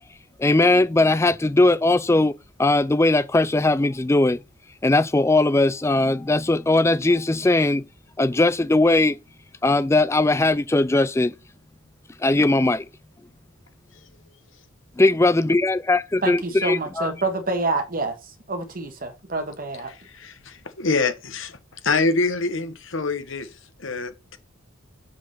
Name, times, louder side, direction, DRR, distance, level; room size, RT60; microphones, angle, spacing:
voice 1, 0.4-4.4 4.8-7.8 8.2-9.2 9.6-11.3 12.2-12.8 15.0-17.1, left 2 dB, 15° left, 0.3 m, -19 dB
voice 2, 16.2-19.9, right 3 dB, 40° right, 1.6 m, -27 dB
voice 3, 19.9-21.6 21.8-24.4, left 3 dB, 65° left, 1.4 m, -26 dB
7.2 x 6.1 x 4.1 m
head